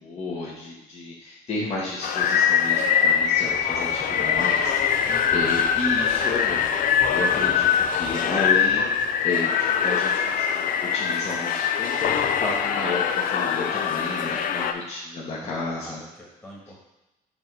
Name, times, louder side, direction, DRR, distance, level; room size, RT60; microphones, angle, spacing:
voice 1, 0.0-9.0 9.2-16.0, left 3 dB, 40° left, -5 dB, 1.2 m, -32 dB
sound 1, 1.6-9.6, equal, 5° right, 0.9 m, -45 dB
sound 2, 2.0-14.7, left 7 dB, 55° left, 0.5 m, -23 dB
voice 2, 5.0-5.4 15.4-16.8, equal, 10° left, -4 dB, 1.5 m, -42 dB
7.3 x 2.9 x 4.6 m, 1.0 s
cardioid pair, 110°, 17 cm